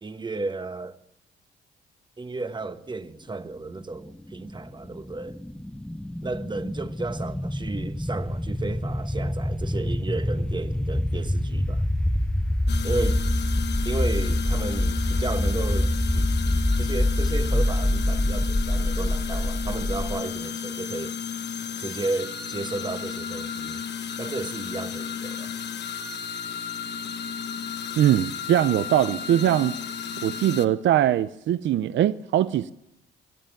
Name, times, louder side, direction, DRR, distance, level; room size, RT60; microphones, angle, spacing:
voice 1, 0.0-1.0 2.2-5.4 6.2-11.8 12.8-13.2 13.8-16.2 16.8-21.2 21.8-23.8 24.2-25.5, right 3 dB, 25° right, 1.3 m, -33 dB
sound 1, 4.3-20.2, left 1 dB, 5° left, 0.7 m, -26 dB
sound 2, 12.7-30.7, left 7 dB, 60° left, 1.3 m, -33 dB
voice 2, 28.0-29.8 30.2-32.7, right 11 dB, 70° right, 0.6 m, -21 dB
26.5 x 11.5 x 9.1 m
cardioid pair, 90°, 20 cm